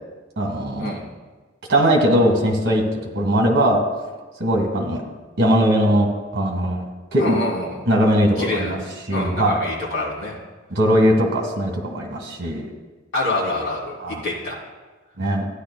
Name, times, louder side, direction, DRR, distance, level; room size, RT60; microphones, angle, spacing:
voice 1, 0.4-1.0 1.7-3.8 4.4-5.0 5.4-6.9 7.1-7.4 7.9-8.8 9.1-9.6 10.7-12.7 14.0-14.2 15.2-15.5, equal, 55° right, 1 dB, 1.9 m, -19 dB
voice 2, 7.2-7.8 8.4-8.8 9.1-10.4 13.1-14.6, left 2 dB, 65° left, -4 dB, 2.8 m, -26 dB
13.5 x 10.0 x 2.3 m, 1.3 s
head